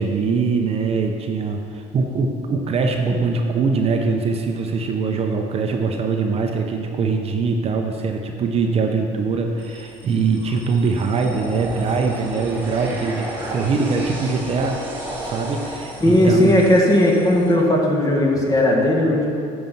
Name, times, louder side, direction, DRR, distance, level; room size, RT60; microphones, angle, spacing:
voice 1, 0.0-14.8 15.2-16.5 18.4-18.5, right 4 dB, 40° right, 3 dB, 0.7 m, -22 dB
sound 1, 9.6-17.5, right 1 dB, 10° right, 2.2 m, -34 dB
voice 2, 16.0-19.2, left 1 dB, 20° left, -2 dB, 1.8 m, -16 dB
9.3 x 5.9 x 5.4 m, 2.6 s
cardioid pair, 105°, 16 cm